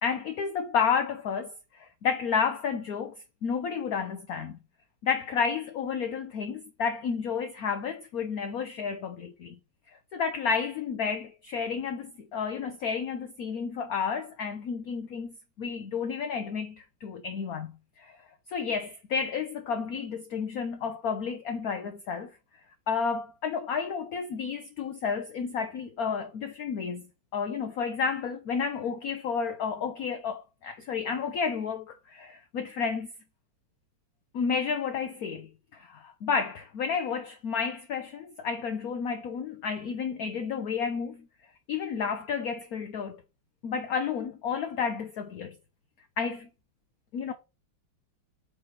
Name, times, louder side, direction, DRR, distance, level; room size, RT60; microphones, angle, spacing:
voice 1, 0.0-3.1 3.4-4.6 5.0-9.6 10.1-17.7 18.0-18.2 18.5-22.3 22.9-27.1 27.3-33.1 34.3-41.3 41.7-43.2 43.6-45.6 46.2-46.5 47.1-47.3, left 6 dB, 60° left, 1.0 m, -31 dB
8.5 x 3.5 x 4.1 m
omnidirectional pair, 2.3 m